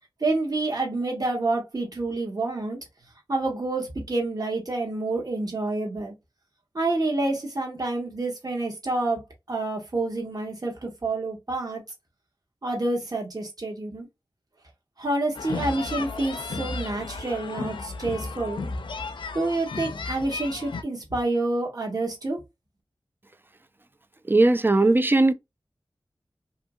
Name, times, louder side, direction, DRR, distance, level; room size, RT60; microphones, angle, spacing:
voice 1, 0.2-2.8 3.3-6.1 6.7-11.8 12.6-14.1 15.0-18.6 19.3-22.4, right 2 dB, 50° right, 1.2 m, -28 dB
sound 1, 15.3-20.8, left 4 dB, 85° left, 0.4 m, -34 dB
voice 2, 24.3-25.3, right 2 dB, 25° right, 0.4 m, -18 dB
2.7 x 2.7 x 2.3 m
cardioid pair, 45°, 8 cm